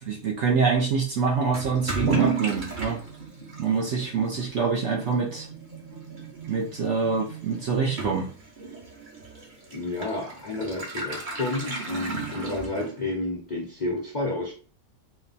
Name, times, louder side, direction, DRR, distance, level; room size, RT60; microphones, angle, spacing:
voice 1, 0.0-3.0 3.6-5.5 6.5-8.3, right 5 dB, 60° right, -1 dB, 0.8 m, -25 dB
Toilet flush / Liquid, 1.5-13.2, right 4 dB, 35° right, 0.9 m, -33 dB
voice 2, 9.7-14.5, left 2 dB, 40° left, -2 dB, 0.6 m, -30 dB
4.3 x 2.3 x 4.0 m, 0.39 s
omnidirectional pair, 1.7 m